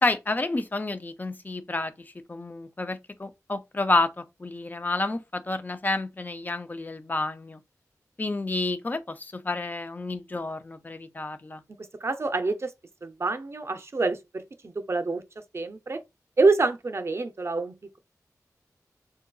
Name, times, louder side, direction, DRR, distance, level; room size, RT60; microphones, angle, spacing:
voice 1, 0.0-1.9 2.3-7.6 8.2-11.6, left 2 dB, 30° left, 0.4 m, -29 dB
voice 2, 11.8-12.7 13.0-15.2 15.5-16.0 16.4-18.0, right 3 dB, 45° right, 0.5 m, -27 dB
3.7 x 2.4 x 2.3 m
wide cardioid pair, 85°, 6 cm